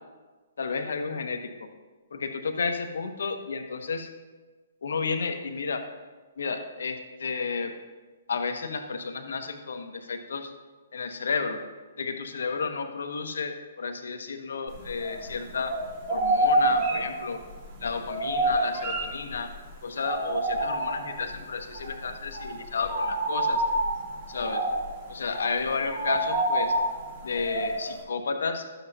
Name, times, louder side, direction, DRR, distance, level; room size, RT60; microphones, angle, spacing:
voice 1, 0.6-1.7 2.1-4.1 4.8-5.9 6.4-7.7 8.3-10.5 10.9-11.6 12.0-17.4 17.8-19.5 19.8-23.6 24.3-24.7 25.1-26.7 27.2-28.6, left 4 dB, 75° left, 6 dB, 0.9 m, -32 dB
sound 1, 14.7-15.4 15.7-19.6 20.0-21.3 21.7-21.9 22.2-28.0, right 1 dB, 35° right, 2.5 m, -28 dB
12.0 x 7.7 x 2.7 m, 1.3 s
hypercardioid pair, 140°, 0 cm